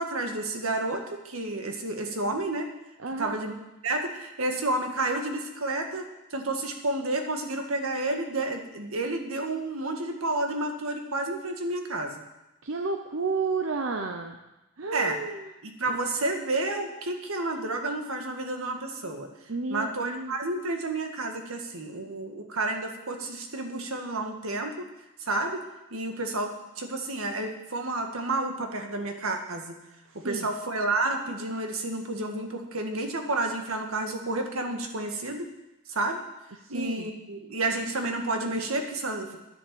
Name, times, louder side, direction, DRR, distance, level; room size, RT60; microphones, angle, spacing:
voice 1, 0.0-2.7 3.2-3.5 3.8-12.2 14.9-15.2 15.6-19.3 19.7-24.9 25.2-25.6 25.9-29.7 30.2-35.5 35.9-36.2 36.7-39.4, right 2 dB, 85° right, 4 dB, 1.9 m, -30 dB
voice 2, 3.0-3.4 12.6-14.4 14.8-15.5 15.9-16.0 19.5-20.3 30.1-30.5 36.6-37.1, right 4 dB, 65° right, 4 dB, 0.9 m, -32 dB
10.0 x 10.0 x 7.0 m, 0.96 s
head